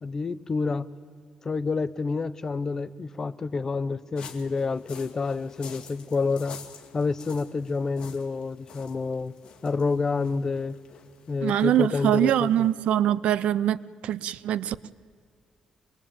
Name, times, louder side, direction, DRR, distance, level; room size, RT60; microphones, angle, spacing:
voice 1, 0.0-0.9 1.4-6.6 6.9-9.3 9.6-10.8 11.3-12.7, left 4 dB, 25° left, 15 dB, 0.6 m, -28 dB
sound 1, 4.2-12.9, left 6 dB, 40° left, 2.1 m, -48 dB
voice 2, 11.4-14.9, right 11 dB, 65° right, 19 dB, 0.6 m, -24 dB
24.0 x 21.0 x 8.7 m, 2.2 s
cardioid pair, 175°, 2 cm